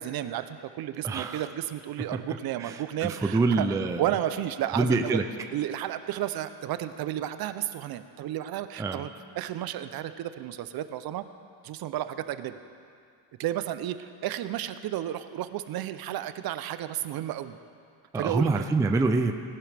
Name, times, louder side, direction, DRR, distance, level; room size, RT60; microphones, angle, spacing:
voice 1, 0.0-3.7 4.0-5.2 5.5-9.1 9.3-11.2 11.6-12.6 13.4-17.6 18.1-18.5, right 12 dB, 55° right, 11 dB, 0.6 m, -32 dB
voice 2, 1.0-1.4 2.0-2.2 2.6-4.0 4.7-5.3 8.8-9.0 18.1-19.3, right 3 dB, 10° right, 6 dB, 0.3 m, -26 dB
19.0 x 11.5 x 3.4 m, 2.3 s
cardioid pair, 135°, 45 cm